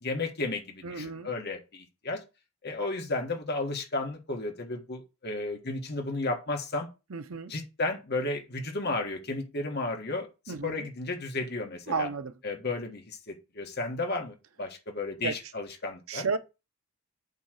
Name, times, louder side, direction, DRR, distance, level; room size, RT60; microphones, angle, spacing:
voice 1, 0.0-2.2 2.6-6.9 7.5-12.1 12.4-16.2, left 2 dB, 45° left, 1.5 m, -33 dB
voice 2, 0.8-1.3 7.1-7.5 10.5-10.9 11.9-12.3 15.2-15.3 16.1-16.4, right 4 dB, 70° right, 0.7 m, -32 dB
8.2 x 3.2 x 6.4 m
head